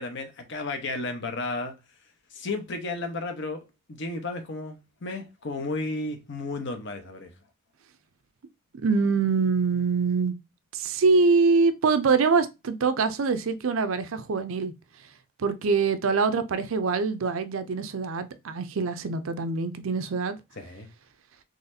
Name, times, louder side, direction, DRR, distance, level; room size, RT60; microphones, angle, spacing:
voice 1, 0.0-1.8 2.3-7.3 20.6-20.9, left 2 dB, 60° left, 0.9 m, -33 dB
voice 2, 8.7-10.3 10.7-14.7 15.4-20.4, right 4 dB, 75° right, 0.5 m, -24 dB
4.0 x 3.1 x 2.6 m
head